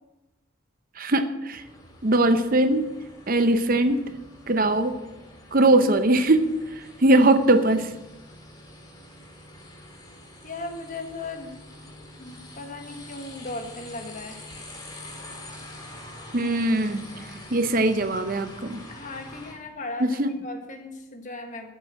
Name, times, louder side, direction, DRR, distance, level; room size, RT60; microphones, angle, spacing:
voice 1, 1.0-1.6 2.0-2.9 3.3-4.1 4.5-5.0 5.5-7.9 16.3-17.0 17.5-18.8 20.0-20.4, right 1 dB, 45° right, 9 dB, 0.7 m, -21 dB
sound 1, 1.5-19.5, left 1 dB, 20° left, 2.3 m, -45 dB
voice 2, 10.4-11.6 12.2-14.4 18.9-21.7, left 2 dB, 40° left, 5 dB, 1.5 m, -37 dB
12.0 x 7.1 x 7.5 m, 1.0 s
head